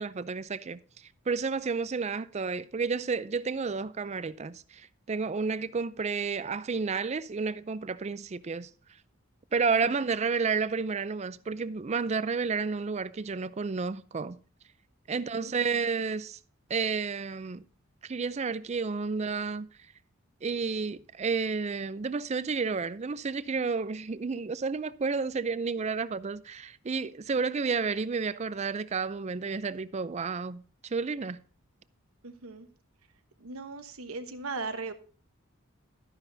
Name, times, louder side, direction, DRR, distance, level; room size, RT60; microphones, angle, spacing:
voice 1, 0.0-8.7 9.5-14.4 15.1-16.4 16.7-17.6 18.0-19.7 20.4-31.4, right 5 dB, 30° right, 0.4 m, -31 dB
voice 2, 15.1-15.8 32.2-32.7 33.4-34.9, right 3 dB, 80° right, 1.1 m, -39 dB
12.5 x 9.8 x 2.7 m
head